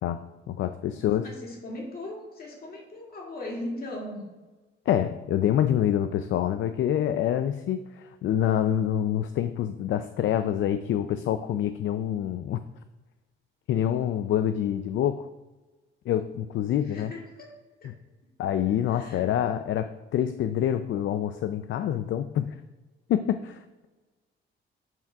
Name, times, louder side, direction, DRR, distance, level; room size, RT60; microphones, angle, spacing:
voice 1, 0.0-1.3 4.9-12.6 13.7-15.3 16.1-17.1 17.8-17.9 18.4-22.5 23.1-23.9, left 10 dB, 65° left, 10 dB, 0.4 m, -26 dB
voice 2, 0.9-4.2 16.9-17.5 17.8-17.9 18.9-19.3, left 1 dB, 45° left, -2 dB, 2.4 m, -38 dB
9.0 x 3.6 x 5.8 m, 1.2 s
cardioid pair, 120°, 21 cm